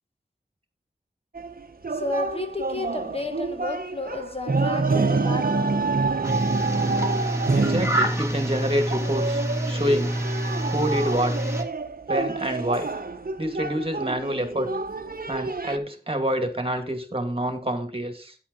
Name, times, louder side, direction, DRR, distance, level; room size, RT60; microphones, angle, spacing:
sound 1, 1.4-15.8, right 3 dB, 55° right, 0.9 m, -28 dB
voice 1, 1.9-5.9, left 2 dB, 30° left, 1.2 m, -32 dB
sound 2, 6.2-11.6, right 1 dB, 15° right, 2.5 m, -27 dB
voice 2, 7.5-9.4 9.7-10.2 10.7-11.4 12.1-12.9 13.4-14.7 15.2-18.4, equal, 30° right, 2.4 m, -27 dB
9.9 x 8.5 x 4.1 m
wide cardioid pair, 60°, 18 cm